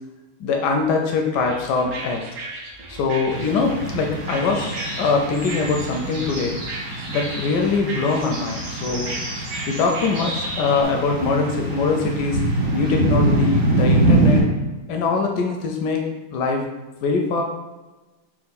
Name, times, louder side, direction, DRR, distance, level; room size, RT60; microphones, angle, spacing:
voice 1, 0.4-2.2 2.9-6.6 7.1-9.2 9.7-12.4 12.7-14.4 14.9-16.6 17.0-17.4, left 4 dB, 75° left, 2 dB, 1.0 m, -22 dB
sound 1, 1.3-10.8, right 2 dB, 70° right, 0.9 m, -36 dB
sound 2, 3.3-14.4, right 1 dB, 85° right, 2.1 m, -24 dB
4.4 x 2.4 x 4.0 m, 1.1 s
omnidirectional pair, 2.1 m